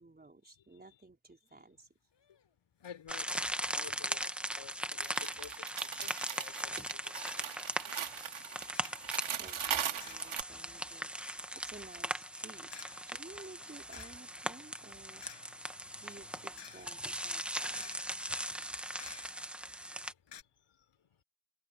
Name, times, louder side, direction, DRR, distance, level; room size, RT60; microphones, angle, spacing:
voice 1, 0.0-1.9 9.3-12.7 13.1-15.3 16.0-18.1, right 2 dB, 20° right, 4.4 m, -54 dB
sound 1, 2.1-2.5 2.8-3.0 3.3-3.4 3.8-4.2 5.0-5.4 6.1-6.5 7.0-7.1 7.4-7.7 8.7-9.1 10.0-10.7 10.9-19.7 20.0-20.1 20.3-20.4, left 7 dB, 60° left, 6.0 m, -56 dB
voice 2, 2.8-8.4 10.4-11.4 18.2-19.0 20.0-21.2, left 8 dB, 80° left, 5.9 m, -55 dB
sound 2, 3.1-20.1, equal, ahead, 0.8 m, -39 dB
sound 3, 5.0-10.4, right 9 dB, 80° right, 2.2 m, -39 dB
wide cardioid pair, 150°, 47 cm